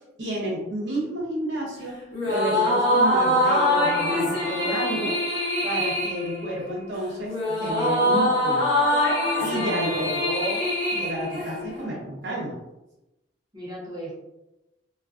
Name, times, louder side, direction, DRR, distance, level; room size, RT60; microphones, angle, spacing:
voice 1, 0.2-1.9 2.3-5.1 5.6-8.7 9.4-10.6 10.9-12.6, right 1 dB, 65° right, -5 dB, 0.7 m, -30 dB
sound 1, 2.1-11.8, left 1 dB, 75° left, 0.9 m, -24 dB
voice 2, 9.3-9.9 13.5-14.1, equal, 25° right, -7 dB, 0.9 m, -38 dB
2.4 x 2.3 x 2.3 m, 0.96 s
head